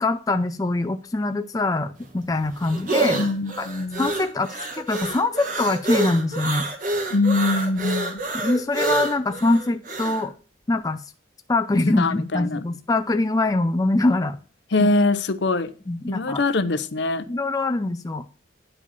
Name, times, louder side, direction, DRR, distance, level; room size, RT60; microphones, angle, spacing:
voice 1, 0.0-3.3 3.6-3.7 4.0-6.7 8.3-10.3 10.7-11.0 11.5-14.4 14.8-14.9 15.9-16.4 17.3-18.2, left 2 dB, 20° left, 0.4 m, -23 dB
sound 1, 2.0-10.2, right 2 dB, 45° right, 1.5 m, -27 dB
voice 2, 3.1-4.1 7.1-8.2 11.9-12.6 14.7-15.7 16.1-17.3, left 2 dB, 65° left, 0.7 m, -23 dB
9.8 x 4.9 x 5.5 m
head